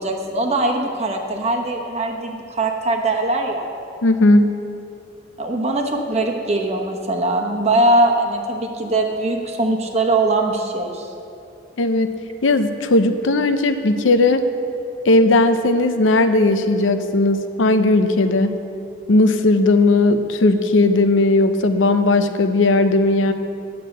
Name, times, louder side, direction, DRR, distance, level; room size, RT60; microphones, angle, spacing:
voice 1, 0.0-3.7 5.4-11.1, right 2 dB, 35° right, 2 dB, 1.0 m, -21 dB
voice 2, 4.0-4.5 11.8-14.4 15.0-18.6 19.1-23.3, left 2 dB, 85° left, 9 dB, 0.6 m, -17 dB
9.4 x 6.7 x 7.8 m, 2.7 s
head